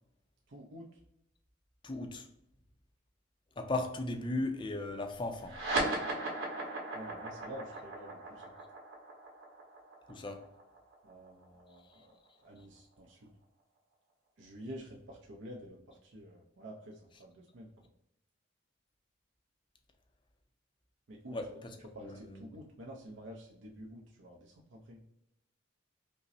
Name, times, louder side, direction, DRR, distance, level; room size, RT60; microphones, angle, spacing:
voice 1, 0.5-0.9 6.9-8.5 11.0-12.2 12.4-13.3 14.4-17.7 21.1-21.6 21.9-25.0, equal, 65° right, 0.6 m, -49 dB
voice 2, 1.8-2.3 3.6-5.6 10.1-10.5 21.3-21.5 22.0-22.4, left 2 dB, 25° left, 0.4 m, -36 dB
sound 1, 5.4-12.3, right 2 dB, 85° right, 1.2 m, -37 dB
5.2 x 2.0 x 2.6 m
head